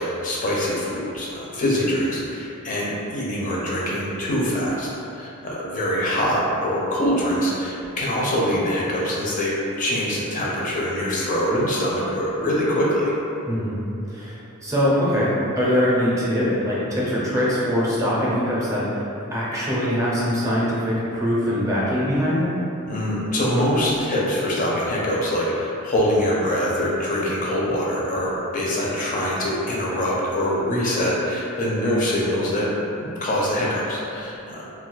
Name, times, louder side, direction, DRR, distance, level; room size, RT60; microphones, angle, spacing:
voice 1, 0.0-4.9 5.1-13.1 22.9-32.7 33.0-34.7, equal, 35° left, -5 dB, 0.4 m, -24 dB
voice 2, 14.1-19.0 19.3-22.6, equal, 15° right, -8 dB, 0.6 m, -22 dB
2.3 x 2.2 x 3.8 m, 2.9 s
head